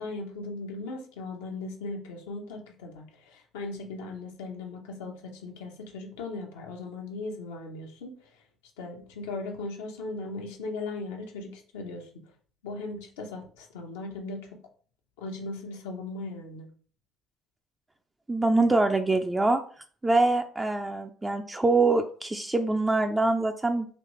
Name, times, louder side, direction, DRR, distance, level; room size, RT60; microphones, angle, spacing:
voice 1, 0.0-8.4 8.8-12.1 12.6-14.6 15.2-16.7, left 3 dB, 90° left, 2 dB, 0.8 m, -38 dB
voice 2, 18.3-19.6 20.0-23.9, right 2 dB, 15° right, 5 dB, 0.4 m, -24 dB
3.2 x 3.1 x 3.0 m, 0.44 s
supercardioid pair, 70°, 0 cm